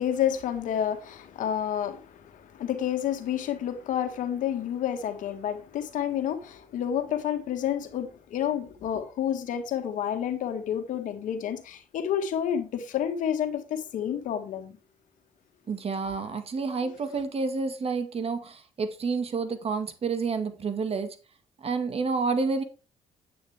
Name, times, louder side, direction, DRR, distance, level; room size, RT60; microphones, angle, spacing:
voice 1, 0.0-14.8 16.8-16.9, left 9 dB, 75° left, 1.7 m, -29 dB
voice 2, 15.7-21.2 21.6-22.6, right 4 dB, 45° right, 1.8 m, -29 dB
9.2 x 8.7 x 3.5 m
supercardioid pair, 70°, 13 cm